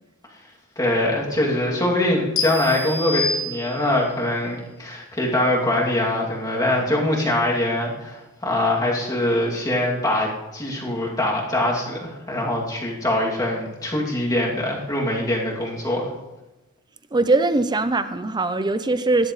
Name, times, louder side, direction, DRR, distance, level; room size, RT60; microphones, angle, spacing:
voice 1, 0.8-16.1, left 1 dB, 15° left, -3 dB, 2.7 m, -23 dB
sound 1, 2.4-4.1, left 3 dB, 60° left, 1.4 m, -27 dB
voice 2, 17.1-19.3, right 2 dB, 20° right, 11 dB, 0.5 m, -21 dB
17.0 x 11.5 x 3.2 m, 1.0 s
head